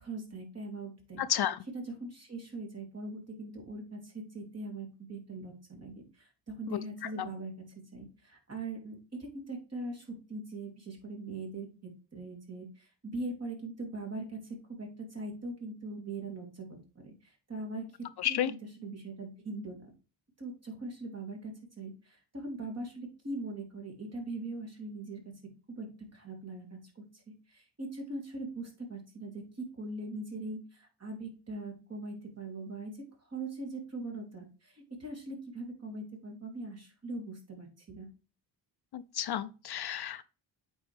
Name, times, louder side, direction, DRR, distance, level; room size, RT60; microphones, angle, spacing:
voice 1, 0.0-1.2 1.7-7.5 7.9-11.7 12.1-19.9 20.4-25.3 25.7-38.1, right 2 dB, 35° right, 3.0 m, -41 dB
voice 2, 18.2-18.5 38.9-40.2, left 11 dB, 60° left, 0.5 m, -31 dB
8.5 x 4.5 x 3.3 m
cardioid pair, 100°, 45 cm